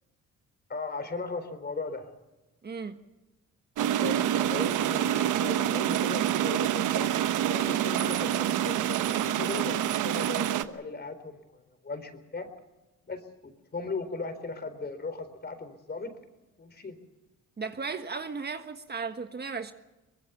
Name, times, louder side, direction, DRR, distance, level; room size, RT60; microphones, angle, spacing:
voice 1, 0.7-2.1 4.0-7.1 7.5-12.5 13.1-16.1 16.6-17.0, left 3 dB, 35° left, 10 dB, 4.1 m, -37 dB
voice 2, 2.6-3.0 17.6-19.7, right 5 dB, 35° right, 7 dB, 1.5 m, -35 dB
sound 1, 3.8-10.6, right 11 dB, 80° right, 1.2 m, -27 dB
24.0 x 20.5 x 7.1 m, 1.0 s
cardioid pair, 90°, 30 cm